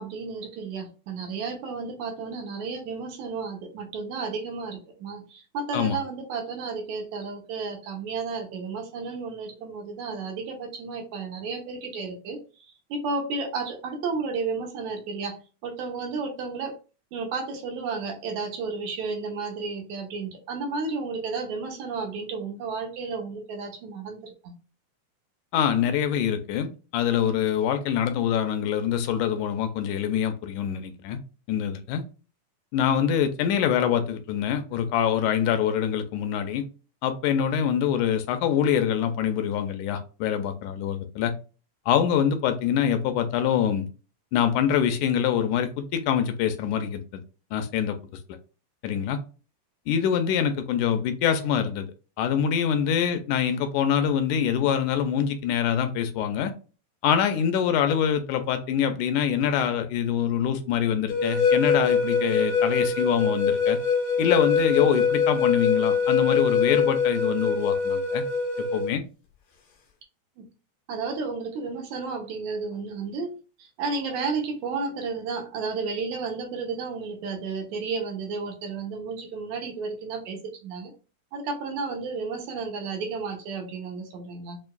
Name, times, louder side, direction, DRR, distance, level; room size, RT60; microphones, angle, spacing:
voice 1, 0.0-16.8 17.1-24.5 70.4-70.5 70.9-80.9 81.3-84.6, right 4 dB, 75° right, 2.3 m, -32 dB
voice 2, 25.5-31.2 31.5-32.0 32.7-36.6 37.0-41.3 41.9-43.9 44.3-47.2 47.5-48.0 48.8-49.2 49.9-51.9 52.2-56.5 57.0-63.8 64.2-68.2 68.7-69.0, left 8 dB, 90° left, 2.1 m, -25 dB
sound 1, 61.1-68.9, left 5 dB, 65° left, 2.0 m, -23 dB
6.5 x 2.5 x 2.3 m
omnidirectional pair, 3.5 m